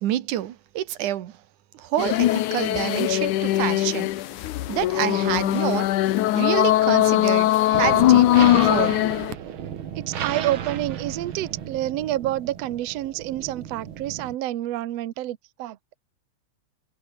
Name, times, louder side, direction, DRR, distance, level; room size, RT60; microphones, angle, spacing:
voice 1, 0.0-1.3 1.7-4.1 4.7-5.9 6.3-9.0, right 12 dB, 85° right, 2.8 m, -28 dB
sound 1, 2.0-9.3, left 14 dB, 80° left, 2.5 m, -20 dB
sound 2, 7.7-14.4, right 9 dB, 50° right, 1.9 m, -34 dB
voice 2, 10.0-15.8, right 14 dB, 65° right, 2.0 m, -28 dB
omnidirectional pair, 3.4 m